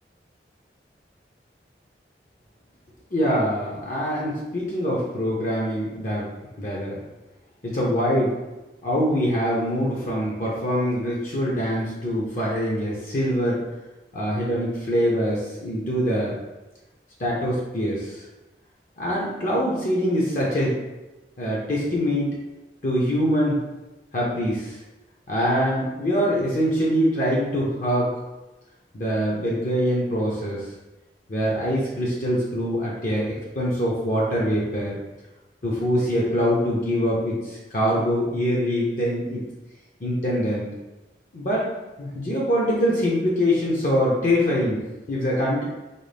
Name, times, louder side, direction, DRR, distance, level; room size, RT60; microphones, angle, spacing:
voice 1, 3.1-6.3 6.6-7.0 7.6-8.3 8.8-13.6 14.1-16.3 17.2-18.2 19.0-20.8 21.4-22.3 22.8-23.6 24.1-24.8 25.3-28.1 28.9-30.7 31.3-35.0 35.6-39.4 40.0-40.7 41.3-41.7 42.0-44.8 45.1-45.6, equal, 45° left, -4 dB, 0.7 m, -24 dB
4.0 x 2.2 x 3.4 m, 1.1 s
head